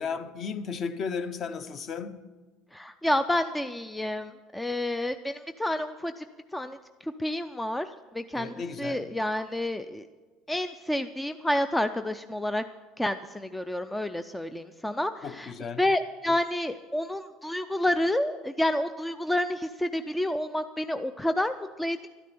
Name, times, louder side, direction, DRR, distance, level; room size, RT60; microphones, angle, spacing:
voice 1, 0.0-2.2 8.3-9.1 15.2-15.8, left 5 dB, 35° left, 0.7 m, -34 dB
voice 2, 2.7-6.2 6.5-6.8 7.0-7.9 8.1-10.0 10.5-12.6 13.0-15.5 15.8-22.1, left 1 dB, 5° left, 0.3 m, -29 dB
12.5 x 10.0 x 6.8 m
cardioid pair, 155°, 0 cm